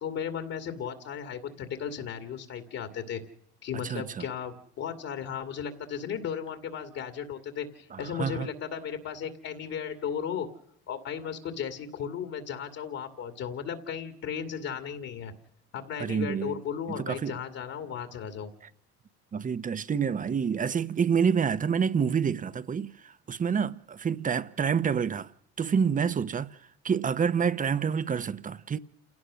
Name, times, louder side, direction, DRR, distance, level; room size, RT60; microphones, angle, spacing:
voice 1, 0.0-3.2 3.6-10.5 10.9-15.3 15.7-18.5, left 8 dB, 55° left, 2.5 m, -35 dB
voice 2, 3.8-4.2 7.9-8.5 16.0-16.6 17.0-17.4 19.3-25.3 25.6-26.6 26.8-28.8, right 6 dB, 25° right, 0.9 m, -28 dB
28.0 x 17.0 x 6.4 m
supercardioid pair, 90°, 30 cm